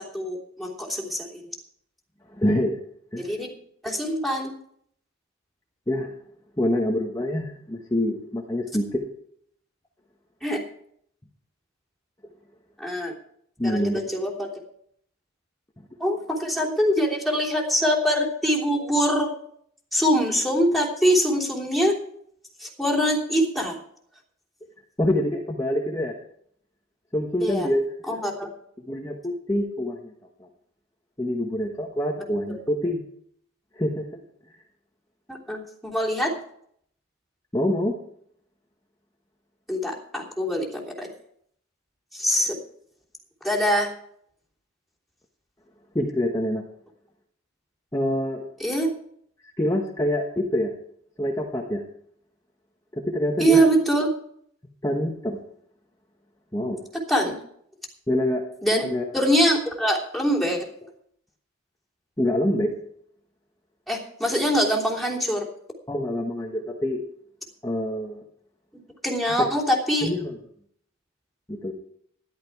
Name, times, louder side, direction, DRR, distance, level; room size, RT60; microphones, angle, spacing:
voice 1, 0.0-1.4 3.2-3.5 3.8-4.5 10.4-10.6 12.8-13.1 13.6-14.5 16.0-19.3 19.9-22.0 22.6-23.7 27.4-27.7 28.1-28.5 35.3-36.3 39.7-41.1 42.1-42.6 43.4-43.9 48.6-48.9 53.4-54.1 57.1-57.4 58.6-58.9 59.1-60.6 63.9-65.5 69.0-70.1, equal, ahead, -3 dB, 3.1 m, -23 dB
voice 2, 2.3-2.8 3.1-3.3 5.9-6.1 6.6-9.0 13.6-14.1 25.0-26.2 27.1-28.2 28.8-30.1 30.4-30.5 31.2-33.0 33.8-34.2 37.5-38.0 45.9-46.6 47.9-48.4 49.6-50.7 51.2-51.8 52.9-53.7 54.8-55.4 56.5-56.8 58.1-58.5 58.8-59.0 62.2-62.7 65.9-67.0 67.6-68.2 69.4-69.5 70.0-70.4 71.5-71.7, left 1 dB, 15° left, -1 dB, 1.3 m, -26 dB
13.5 x 11.5 x 4.7 m, 0.67 s
head